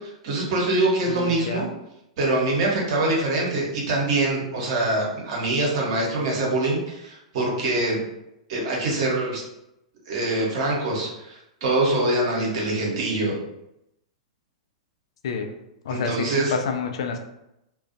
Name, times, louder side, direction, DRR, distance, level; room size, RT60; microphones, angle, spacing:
voice 1, 0.0-1.7 2.2-8.0 8.5-9.4 10.1-13.4 15.9-16.6, right 2 dB, 55° right, -2 dB, 0.9 m, -24 dB
voice 2, 1.1-1.6 15.2-15.5 15.9-17.2, left 5 dB, 65° left, 5 dB, 0.4 m, -28 dB
2.4 x 2.2 x 2.5 m, 0.85 s
figure-of-eight pair, 100°, 3 cm